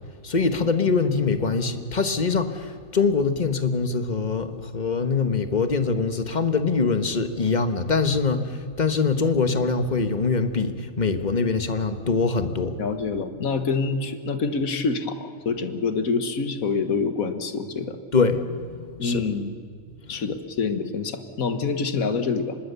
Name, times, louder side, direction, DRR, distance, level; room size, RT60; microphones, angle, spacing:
voice 1, 0.2-12.8 18.1-19.3 20.1-20.2, left 4 dB, 35° left, 9 dB, 1.3 m, -23 dB
voice 2, 12.8-18.0 19.0-19.6 20.1-22.6, left 4 dB, 80° left, 10 dB, 1.8 m, -26 dB
25.0 x 20.0 x 6.9 m, 2.3 s
omnidirectional pair, 1.4 m